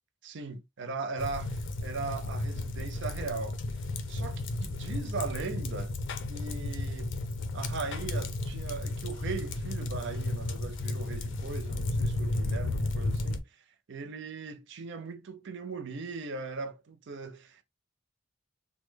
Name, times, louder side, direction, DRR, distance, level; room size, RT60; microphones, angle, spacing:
voice 1, 0.2-3.6 4.1-5.9 6.3-7.2 7.5-13.4 13.9-17.6, right 4 dB, 55° right, 0.4 m, -39 dB
sound 1, 1.2-13.4, left 2 dB, 60° left, 0.5 m, -33 dB
3.1 x 2.1 x 3.2 m
head